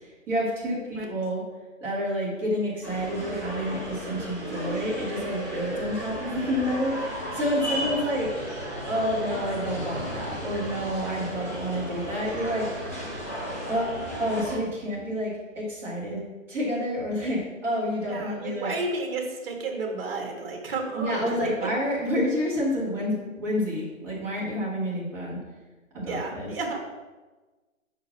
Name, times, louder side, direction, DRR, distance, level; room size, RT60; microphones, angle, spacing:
voice 1, 0.3-1.4 1.8-8.3 8.9-12.7 13.6-18.7 21.0-25.4 25.9-26.5, equal, 5° right, -8 dB, 0.9 m, -29 dB
sound 1, 2.8-14.6, equal, 10° left, 0.5 m, -34 dB
voice 2, 7.6-8.1 18.0-21.7 26.1-26.8, right 3 dB, 45° right, 2 dB, 1.5 m, -32 dB
5.5 x 4.7 x 5.6 m, 1.2 s
hypercardioid pair, 155°, 41 cm